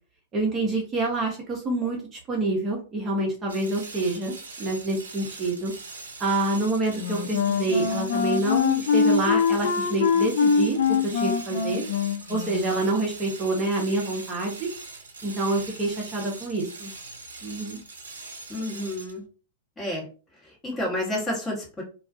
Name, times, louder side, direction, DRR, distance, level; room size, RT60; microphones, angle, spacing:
voice 1, 0.3-5.7 6.2-11.8 12.3-14.7 15.2-16.9 17.4-17.8, right 2 dB, 30° right, 0 dB, 0.7 m, -27 dB
sound 1, 3.5-19.2, right 3 dB, 75° right, 0.6 m, -42 dB
Wind instrument woodwind instrument, 7.0-12.9, left 6 dB, 60° left, 0.4 m, -24 dB
voice 2, 18.5-19.2 19.8-20.1 20.6-21.8, left 1 dB, 15° left, -3 dB, 1.1 m, -30 dB
2.3 x 2.3 x 2.5 m, 0.36 s
figure-of-eight pair, 100°, 0 cm